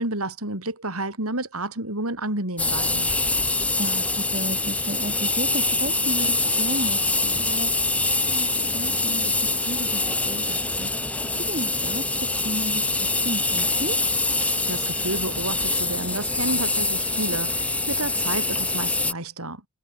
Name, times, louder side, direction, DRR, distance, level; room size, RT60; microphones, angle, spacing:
voice 1, 0.0-3.1 14.5-19.6, right 2 dB, 75° right, 7.9 m, -30 dB
sound 1, 2.6-19.1, left 2 dB, 5° left, 2.3 m, -24 dB
voice 2, 3.8-7.7 8.1-14.0, right 1 dB, 40° right, 4.3 m, -34 dB
head